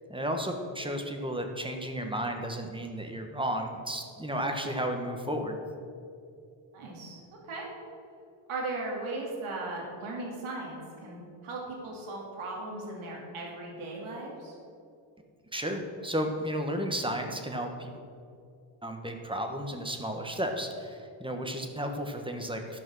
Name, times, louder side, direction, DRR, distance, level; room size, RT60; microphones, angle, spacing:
voice 1, 0.1-5.6 15.5-17.9 18.8-22.8, equal, 10° right, 4 dB, 1.4 m, -33 dB
voice 2, 6.7-7.7 8.5-14.5, right 2 dB, 80° right, -2 dB, 2.6 m, -37 dB
12.5 x 5.6 x 6.2 m, 2.4 s
cardioid pair, 75°, 49 cm